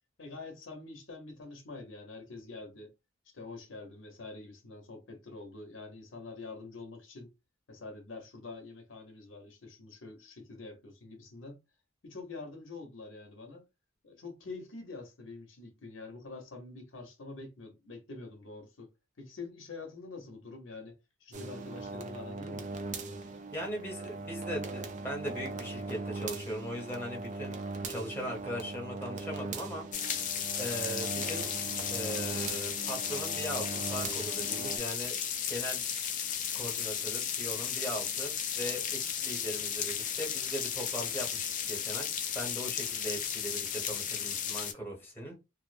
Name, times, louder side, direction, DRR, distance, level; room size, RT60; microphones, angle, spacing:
voice 1, 0.2-2.9 3.3-7.3 7.7-11.6 12.0-13.6 14.0-18.9 19.2-22.7, left 3 dB, 70° left, 0.8 m, -46 dB
sound 1, 21.3-34.8, right 3 dB, 40° right, 0.4 m, -40 dB
voice 2, 23.5-27.6 27.9-31.5 31.9-35.2 35.5-35.8 36.5-42.1 42.3-45.4, equal, 10° left, 1.1 m, -39 dB
sound 2, 29.9-44.7, left 8 dB, 40° left, 0.4 m, -34 dB
2.5 x 2.0 x 2.4 m
head